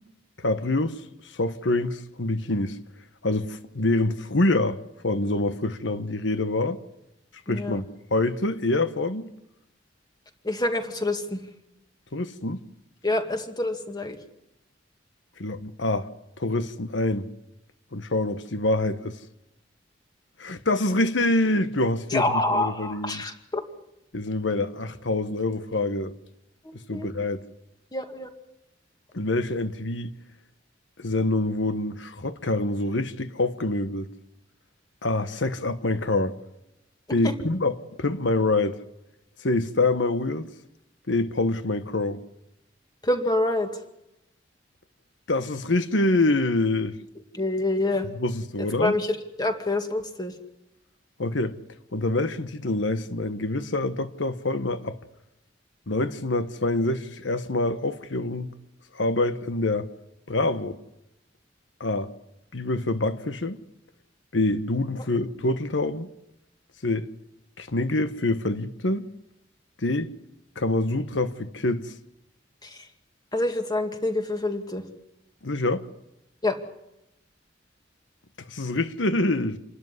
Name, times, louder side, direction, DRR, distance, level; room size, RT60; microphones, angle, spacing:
voice 1, 0.4-1.0 1.3-2.8 3.2-6.8 7.5-7.8 8.1-9.3 12.1-12.6 15.4-16.1 16.4-17.3 17.9-19.2 20.4-23.2 24.1-26.1 26.9-27.4 29.1-30.1 31.0-34.1 35.0-36.4 37.1-38.8 39.4-40.5 41.1-42.2 45.3-47.0 48.1-48.9 51.2-51.6 51.9-55.0 55.9-58.5 58.9-59.9 60.3-60.8 61.8-62.1 62.5-63.6 64.3-66.1 66.8-67.1 67.6-69.1 69.8-70.1 70.6-71.9 75.4-75.9 78.4-79.6, left 2 dB, 85° left, 1.3 m, -26 dB
voice 2, 7.5-7.8 10.4-11.4 13.0-14.2 22.1-23.6 26.9-27.1 27.9-28.3 37.2-37.3 43.0-43.7 47.3-48.1 48.8-50.3 72.6-72.8 73.3-74.8 76.4-76.6, left 2 dB, 20° left, 2.2 m, -26 dB
27.5 x 13.0 x 9.6 m
head